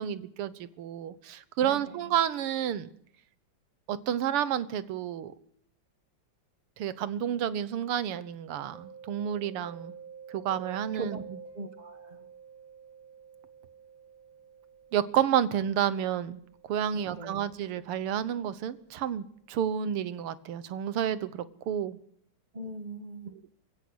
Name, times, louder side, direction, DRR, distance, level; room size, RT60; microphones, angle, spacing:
voice 1, 0.0-2.9 3.9-5.3 6.8-9.9 10.3-11.4 14.9-16.4 16.7-22.0, right 9 dB, 90° right, 2.0 m, -30 dB
voice 2, 1.6-2.0 10.9-11.2 11.5-12.3 16.9-17.4 22.5-23.3, right 2 dB, 25° right, 1.0 m, -41 dB
Mallet percussion, 8.7-18.3, right 7 dB, 60° right, 3.8 m, -49 dB
27.5 x 16.5 x 6.3 m
omnidirectional pair, 2.4 m